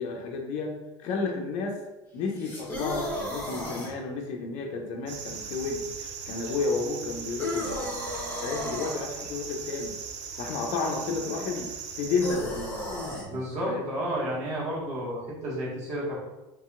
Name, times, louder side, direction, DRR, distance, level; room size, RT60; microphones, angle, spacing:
voice 1, 0.0-1.8 2.1-5.9 6.3-8.0 8.4-9.9 10.4-11.7 12.0-12.8 13.3-13.4 13.7-13.9, left 4 dB, 55° left, 2 dB, 0.5 m, -31 dB
sound 1, 2.4-3.9 7.4-9.0 12.2-13.3, left 1 dB, 15° left, 1.0 m, -34 dB
sound 2, 5.1-12.4, right 6 dB, 90° right, 0.4 m, -39 dB
voice 2, 13.3-16.2, equal, 50° right, -5 dB, 1.4 m, -31 dB
2.9 x 2.7 x 2.4 m, 1.0 s
hypercardioid pair, 85°, 15 cm